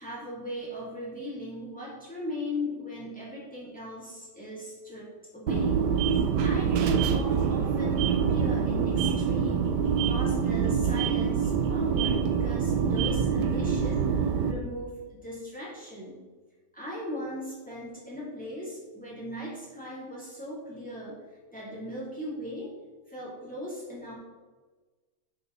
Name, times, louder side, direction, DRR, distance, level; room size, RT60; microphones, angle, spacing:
voice 1, 0.0-5.8 6.2-16.1 16.7-21.2 21.5-22.7 23.1-24.1, left 1 dB, 5° left, -6 dB, 2.8 m, -38 dB
sound 1, 5.5-14.5, right 6 dB, 75° right, 1.3 m, -25 dB
11.0 x 5.4 x 4.0 m, 1.3 s
omnidirectional pair, 1.9 m